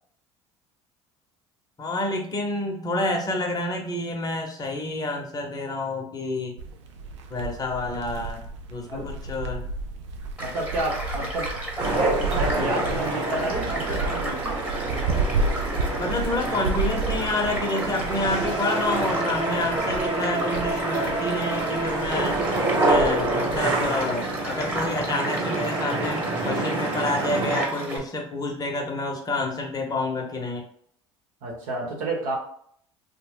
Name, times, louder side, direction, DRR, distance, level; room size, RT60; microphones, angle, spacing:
voice 1, 1.8-6.5 7.3-8.4 8.7-9.7 16.0-22.5 22.8-30.6, left 2 dB, 25° left, 2 dB, 0.8 m, -28 dB
sound 1, 6.6-25.1, right 3 dB, 80° right, 0.4 m, -33 dB
Child speech kid speaking / Stream / Car passing by, 10.4-28.0, right 1 dB, 10° right, 1.1 m, -34 dB
voice 2, 10.4-11.6 11.9-14.6 31.4-32.3, right 2 dB, 60° right, -1 dB, 0.9 m, -30 dB
sound 2, 11.8-27.6, right 2 dB, 30° right, 1.2 m, -27 dB
2.6 x 2.1 x 3.4 m, 0.64 s
hypercardioid pair, 65°, 15 cm